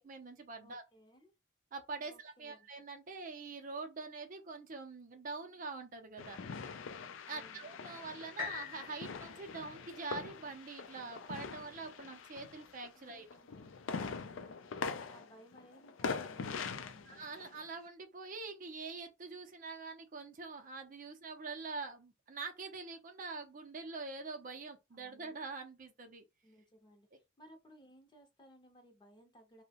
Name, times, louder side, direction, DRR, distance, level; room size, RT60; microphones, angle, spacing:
voice 1, 0.0-0.8 1.7-6.4 7.3-13.3 17.1-26.2, right 4 dB, 40° right, 0.5 m, -45 dB
voice 2, 0.6-1.3 2.0-2.7 7.2-7.6 12.9-13.8 14.3-17.3 24.9-25.3 26.4-29.6, right 1 dB, 25° left, 0.6 m, -61 dB
sound 1, 6.2-13.0 13.3-17.7, left 5 dB, 75° left, 0.4 m, -43 dB
sound 2, 8.4-12.3 12.9-13.0, left 6 dB, 45° left, 1.0 m, -47 dB
2.7 x 2.1 x 2.8 m
head